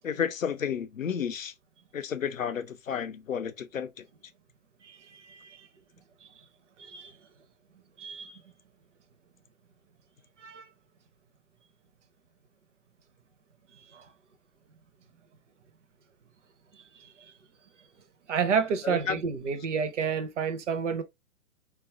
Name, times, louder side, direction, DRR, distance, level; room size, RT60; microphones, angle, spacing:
voice 1, 0.0-1.5 1.9-4.0 18.8-19.2, left 7 dB, 85° left, 0.5 m, -32 dB
voice 2, 4.8-5.6 6.8-7.1 8.0-8.4 10.4-10.6 13.9-14.1 18.3-21.0, right 6 dB, 65° right, 0.7 m, -30 dB
3.9 x 2.3 x 2.3 m
figure-of-eight pair, 115°, 39 cm